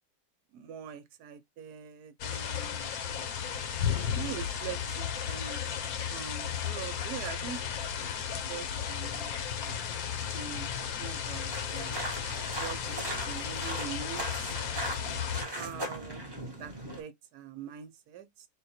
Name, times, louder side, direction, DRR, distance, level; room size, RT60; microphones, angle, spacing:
voice 1, 0.5-3.6 4.1-5.6 6.1-7.6 8.3-9.3 9.6-9.7 10.3-12.0 12.6-14.6 15.5-16.2 16.6-18.5, right 8 dB, 75° right, 1.2 m, -43 dB
sound 1, 2.2-15.4, left 8 dB, 65° left, 1.1 m, -34 dB
sound 2, 11.5-17.0, right 1 dB, 20° right, 0.6 m, -39 dB
3.8 x 2.3 x 4.1 m
omnidirectional pair, 1.8 m